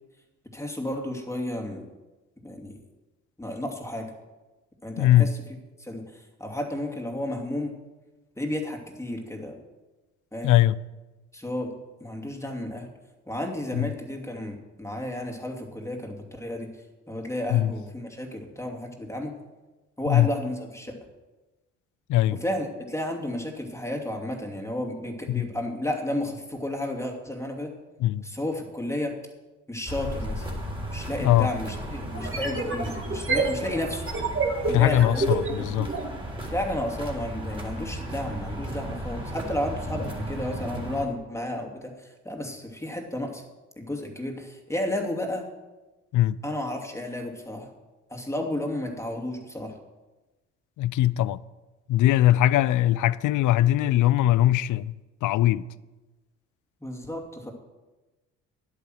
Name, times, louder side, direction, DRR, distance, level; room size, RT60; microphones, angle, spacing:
voice 1, 0.5-1.8 2.4-2.8 3.4-4.1 4.8-5.4 5.8-7.8 8.4-9.6 10.3-10.6 11.3-11.7 12.0-12.9 13.3-16.7 17.1-19.4 20.0-21.1 22.3-27.7 28.2-29.2 29.7-30.5 30.9-34.0 34.7-35.7 36.4-43.4 43.8-45.5 46.4-47.7 48.1-49.8 56.8-57.5, left 1 dB, 10° left, 2.7 m, -32 dB
voice 2, 5.0-5.3 10.4-10.8 13.8-13.9 17.5-17.7 20.1-20.3 22.1-22.4 25.3-25.5 28.0-28.2 31.2-31.5 34.7-35.9 46.1-46.4 50.8-51.4 51.9-54.9 55.2-55.7, left 13 dB, 60° left, 0.5 m, -21 dB
sound 1, 29.9-41.1, right 1 dB, 15° right, 3.8 m, -35 dB
sound 2, 30.7-30.8 32.1-36.1, right 3 dB, 35° right, 2.4 m, -28 dB
11.0 x 8.7 x 6.4 m
hypercardioid pair, 55°, 35 cm